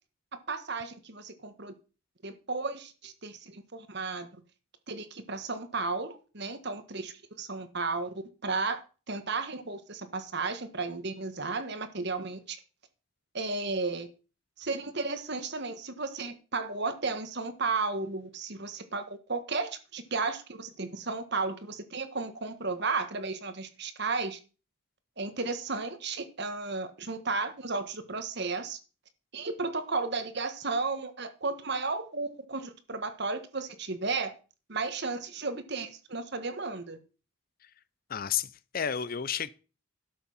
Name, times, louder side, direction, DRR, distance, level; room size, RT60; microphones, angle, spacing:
voice 1, 0.5-1.7 2.2-4.3 4.9-8.8 9.1-12.6 13.3-14.1 14.6-24.4 25.2-28.8 29.3-34.3 34.7-37.0, right 3 dB, 50° right, 1.4 m, -34 dB
voice 2, 38.1-39.5, left 8 dB, 40° left, 0.5 m, -32 dB
12.0 x 7.1 x 5.6 m
head